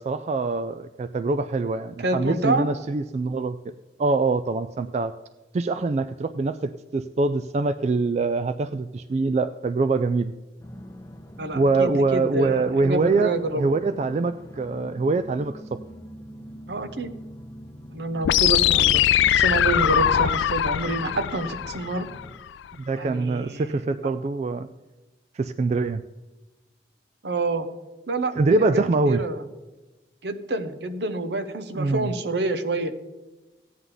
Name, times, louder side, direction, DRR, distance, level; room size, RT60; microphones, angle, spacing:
voice 1, 0.0-3.6 4.0-5.1 5.5-10.3 11.5-15.8 22.8-24.7 25.3-26.0 28.4-29.2 31.7-32.1, right 3 dB, 40° right, 11 dB, 0.3 m, -24 dB
voice 2, 2.0-2.7 11.4-13.7 16.7-17.1 17.9-19.0 19.3-22.1 22.9-23.6 27.2-27.7 28.1-29.4 30.2-32.9, right 2 dB, 70° right, 9 dB, 0.9 m, -28 dB
sound 1, 10.6-22.4, equal, 15° left, 0.6 m, -44 dB
sound 2, 18.2-22.2, left 11 dB, 90° left, 0.3 m, -21 dB
15.0 x 9.5 x 3.9 m, 1.1 s
head